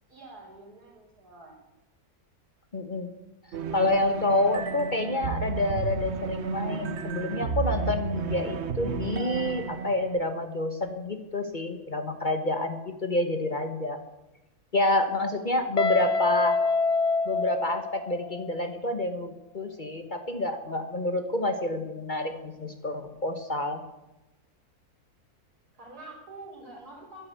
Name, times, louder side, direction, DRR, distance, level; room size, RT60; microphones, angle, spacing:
voice 1, 0.1-1.6 15.4-15.8 25.7-27.3, right 2 dB, 85° right, -1 dB, 4.9 m, -47 dB
voice 2, 2.7-3.1 3.7-14.0 14.7-16.6 17.2-23.8, left 2 dB, 35° left, 7 dB, 1.1 m, -28 dB
sound 1, 3.5-10.2, right 5 dB, 50° right, 1.0 m, -32 dB
Guitar, 15.8-18.6, left 4 dB, 50° left, 0.4 m, -26 dB
12.0 x 10.5 x 8.1 m, 1.0 s
omnidirectional pair, 1.6 m